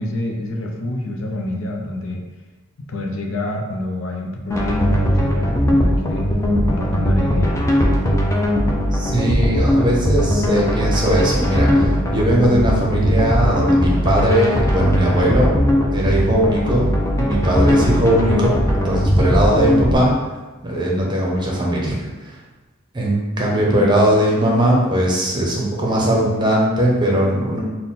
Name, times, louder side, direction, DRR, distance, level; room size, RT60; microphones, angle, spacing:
voice 1, 0.0-2.2 2.9-6.3 6.7-7.6, left 1 dB, 70° left, 1 dB, 0.6 m, -27 dB
sound 1, 4.5-19.9, equal, 15° left, 0.5 m, -18 dB
voice 2, 8.9-15.6 15.9-16.9 17.2-20.1 20.6-22.4 22.9-27.6, right 1 dB, 20° right, -3 dB, 0.8 m, -19 dB
4.0 x 2.2 x 4.0 m, 1.2 s
head